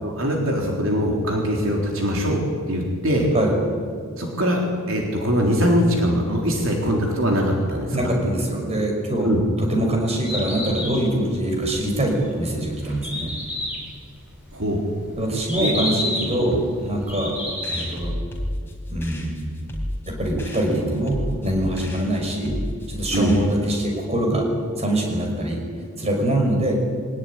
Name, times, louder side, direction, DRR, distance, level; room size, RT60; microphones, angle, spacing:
voice 1, 0.0-3.3 4.2-8.1 9.2-9.4 14.5-14.8 15.6-15.7 16.4-16.6 23.1-23.4, equal, 65° right, 0 dB, 3.8 m, -22 dB
voice 2, 7.9-9.3 9.6-13.3 15.2-17.4 17.7-18.2 18.9-19.5 20.1-22.6 22.9-24.5 24.8-25.6 26.0-26.8, right 1 dB, 30° right, 1 dB, 5.6 m, -23 dB
Bird, 10.1-18.1, left 1 dB, 5° right, 7.8 m, -31 dB
sound 1, 17.6-23.8, left 1 dB, 10° left, 4.6 m, -32 dB
23.5 x 19.0 x 9.9 m, 2.1 s
head